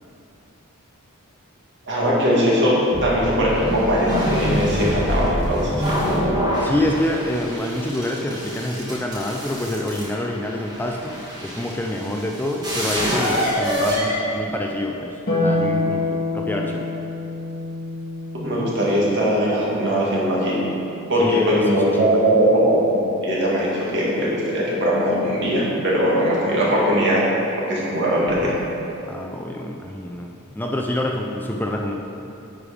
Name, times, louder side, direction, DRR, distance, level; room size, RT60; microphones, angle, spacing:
voice 1, 1.9-6.0 18.3-20.6 21.1-27.3 27.6-28.5, equal, 55° right, -5 dB, 2.0 m, -20 dB
sound 1, 2.9-14.9, equal, 20° right, 1.9 m, -26 dB
voice 2, 6.6-16.9 21.2-22.2 29.1-31.9, left 1 dB, 10° left, 1 dB, 0.4 m, -26 dB
Harp, 15.3-21.8 23.4-24.4, left 2 dB, 45° left, 1.9 m, -28 dB
9.9 x 5.0 x 5.0 m, 2.8 s
head